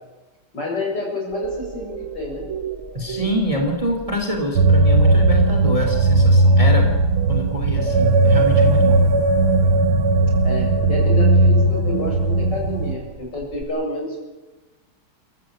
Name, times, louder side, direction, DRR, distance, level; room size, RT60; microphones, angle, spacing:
voice 1, 0.5-2.4 10.4-14.2, left 2 dB, 50° left, 0 dB, 7.5 m, -28 dB
sound 1, 1.3-13.6, right 5 dB, 40° right, 1.5 m, -37 dB
voice 2, 2.9-6.9 7.3-9.0, left 1 dB, 15° right, 3 dB, 3.2 m, -25 dB
sound 2, 4.6-13.0, right 2 dB, 80° right, 1.8 m, -16 dB
29.0 x 14.5 x 8.9 m, 1.1 s
omnidirectional pair, 2.4 m